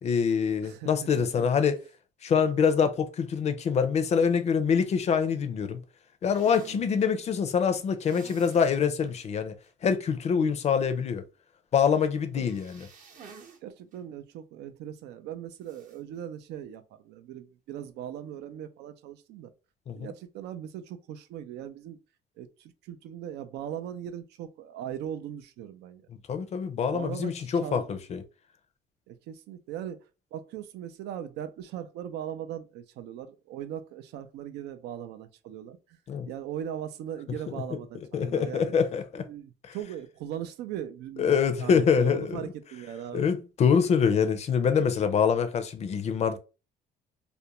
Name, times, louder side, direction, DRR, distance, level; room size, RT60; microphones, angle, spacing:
voice 1, 0.0-1.8 2.2-5.8 6.2-9.5 9.8-11.2 11.7-12.9 19.9-20.1 26.3-28.2 36.1-36.3 38.1-39.3 41.2-42.4 43.1-46.4, left 6 dB, 40° left, 0.5 m, -25 dB
voice 2, 0.6-1.5 6.6-7.1 12.3-12.5 13.6-19.5 19.9-22.0 22.4-26.0 26.8-27.8 29.1-30.0 30.3-36.0 36.3-38.7 39.2-43.3, right 10 dB, 80° right, 0.4 m, -39 dB
sound 1, 6.3-6.8 8.0-8.8 9.1-9.2 9.6-9.7 12.4-13.6 13.9-14.0 15.6-16.0, right 6 dB, 50° right, 0.7 m, -50 dB
2.4 x 2.1 x 2.8 m
cardioid pair, 110°, 17 cm